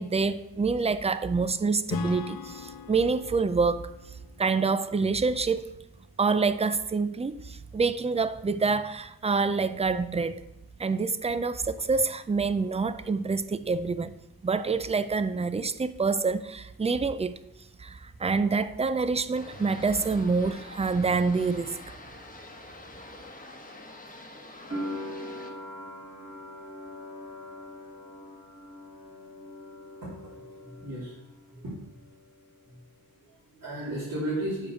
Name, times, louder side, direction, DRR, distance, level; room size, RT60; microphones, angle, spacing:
voice 1, 0.0-3.9 4.4-5.7 6.2-10.4 10.8-14.1 14.4-17.3 17.8-21.8, right 4 dB, 20° right, 0.3 m, -27 dB
Acoustic guitar / Strum, 1.9-5.5, left 7 dB, 75° left, 0.5 m, -40 dB
sound 1, 19.4-25.5, left 2 dB, 20° left, 1.1 m, -46 dB
sound 2, 24.7-31.5 31.8-32.6, left 1 dB, 35° right, 2.1 m, -41 dB
voice 2, 30.0-31.2 31.5-32.0 32.6-32.8 33.2-34.7, right 1 dB, 65° right, 3.1 m, -35 dB
7.3 x 5.0 x 6.2 m
wide cardioid pair, 105°, 37 cm